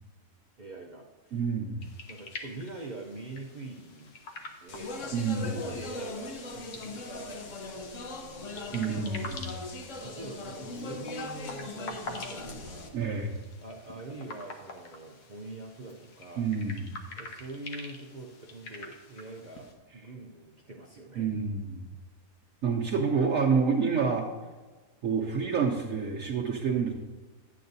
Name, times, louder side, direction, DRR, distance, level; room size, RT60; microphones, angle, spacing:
voice 1, 0.6-1.4 2.1-5.1 5.4-7.4 7.8-9.0 9.3-9.7 10.0-13.3 13.6-16.5 17.2-21.3, right 2 dB, 75° right, -1 dB, 0.4 m, -44 dB
voice 2, 1.3-1.8 5.1-5.6 8.7-9.6 12.9-13.3 16.4-16.9 21.2-21.8 22.6-24.3 25.0-26.9, right 5 dB, 60° right, -3 dB, 1.0 m, -28 dB
sound 1, 1.8-19.7, left 3 dB, 75° left, 1.5 m, -46 dB
Speech, 4.7-12.9, left 2 dB, 55° left, 1.1 m, -40 dB
10.5 x 8.6 x 2.6 m, 1.3 s
omnidirectional pair, 1.7 m